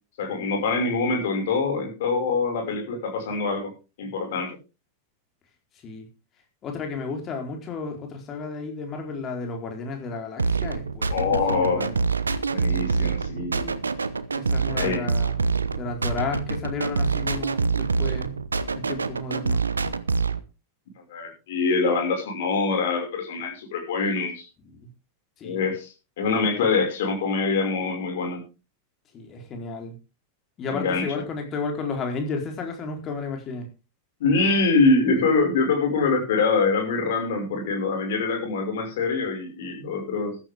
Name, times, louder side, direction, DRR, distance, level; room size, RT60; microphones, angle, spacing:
voice 1, 0.2-3.7 4.0-4.5 11.1-11.9 12.5-13.7 14.7-15.1 21.1-24.4 25.4-28.4 30.7-31.0 34.2-40.4, left 4 dB, 55° left, 2 dB, 5.9 m, -24 dB
voice 2, 6.6-12.0 14.4-15.5 15.8-18.4 18.7-19.6 24.7-24.9 25.4-25.6 29.1-29.9 30.6-33.7, left 4 dB, 30° left, 3 dB, 4.2 m, -33 dB
sound 1, 10.4-20.4, right 4 dB, 75° right, 0.9 m, -26 dB
14.5 x 12.5 x 3.7 m, 0.31 s
figure-of-eight pair, 90°, 0 cm